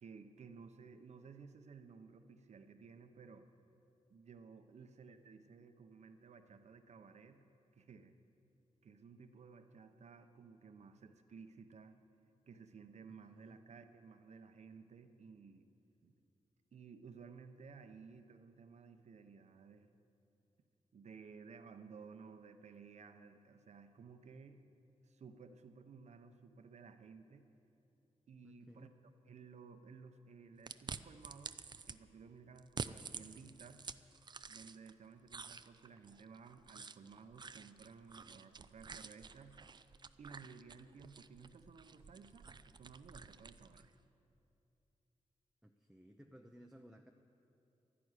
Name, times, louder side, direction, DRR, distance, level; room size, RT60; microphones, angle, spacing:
voice 1, 0.0-3.5 4.1-7.4 7.7-8.1 8.8-12.0 12.5-15.7 16.0-16.1 16.7-19.9 20.9-24.6 25.0-27.5 28.3-28.9 29.3-33.8 34.5-39.6 40.2-43.9, right 5 dB, 65° right, 8 dB, 0.9 m, -56 dB
voice 2, 13.1-13.6 28.4-29.0 45.6-47.1, equal, 5° right, 3 dB, 0.7 m, -59 dB
sound 1, 30.7-32.0 32.6-34.9 35.3-43.9, right 5 dB, 35° right, 0.4 m, -50 dB
12.0 x 11.0 x 9.8 m, 2.8 s
wide cardioid pair, 110°, 12 cm